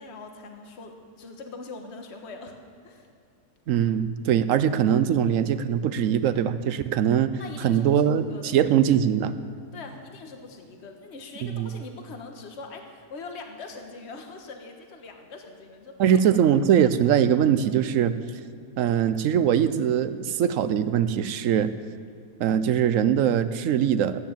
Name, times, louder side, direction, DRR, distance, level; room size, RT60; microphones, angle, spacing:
voice 1, 0.0-2.5 2.8-3.1 7.4-8.5 9.7-16.6, left 3 dB, 45° left, 4 dB, 1.5 m, -42 dB
voice 2, 3.7-7.3 7.6-9.3 11.4-11.7 16.0-18.1 18.8-21.7 22.4-24.2, right 9 dB, 65° right, 12 dB, 0.9 m, -22 dB
14.5 x 9.4 x 7.4 m, 2.4 s
omnidirectional pair, 1.7 m